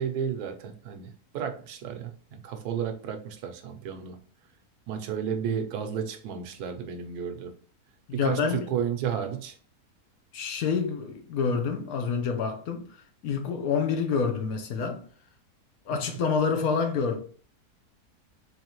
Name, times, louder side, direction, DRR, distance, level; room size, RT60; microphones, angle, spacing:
voice 1, 0.0-4.2 4.9-7.5 8.1-9.5, right 8 dB, 80° right, 1.2 m, -32 dB
voice 2, 8.1-8.7 10.3-12.9 13.2-15.0 15.9-17.2, left 5 dB, 70° left, 1.2 m, -27 dB
3.9 x 3.2 x 3.0 m
omnidirectional pair, 1.6 m